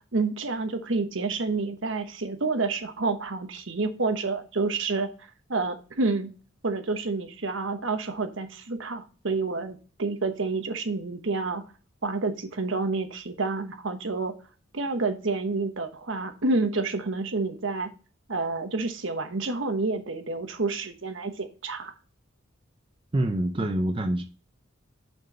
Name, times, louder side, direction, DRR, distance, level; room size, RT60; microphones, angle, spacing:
voice 1, 0.1-6.3 6.6-11.6 12.0-14.3 14.7-17.9 18.3-21.9, right 3 dB, 70° right, 1.1 m, -29 dB
voice 2, 23.1-24.2, right 1 dB, 25° right, 0.4 m, -26 dB
6.3 x 4.5 x 5.5 m
head